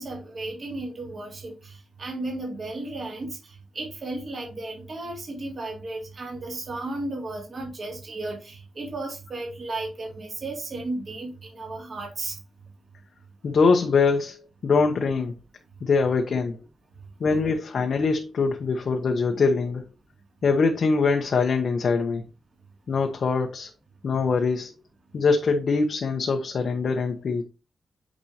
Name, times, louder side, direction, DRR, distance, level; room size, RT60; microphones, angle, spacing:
voice 1, 0.0-12.4 19.3-19.4, right 2 dB, 40° right, 2.6 m, -34 dB
voice 2, 13.4-15.3 15.8-16.6 17.2-19.8 20.4-22.2 22.9-23.7 24.0-24.7 25.1-27.4, left 4 dB, 55° left, 0.9 m, -23 dB
8.8 x 5.2 x 2.9 m
wide cardioid pair, 145°, 0 cm